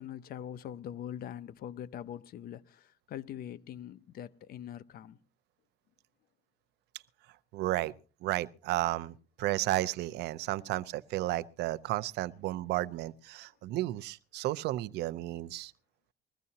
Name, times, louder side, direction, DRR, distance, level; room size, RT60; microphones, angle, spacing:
voice 1, 0.0-5.2, left 10 dB, 65° left, 0.8 m, -43 dB
voice 2, 7.5-7.9 8.2-15.7, right 16 dB, 80° right, 0.6 m, -33 dB
21.5 x 15.0 x 2.8 m
cardioid pair, 110°, 17 cm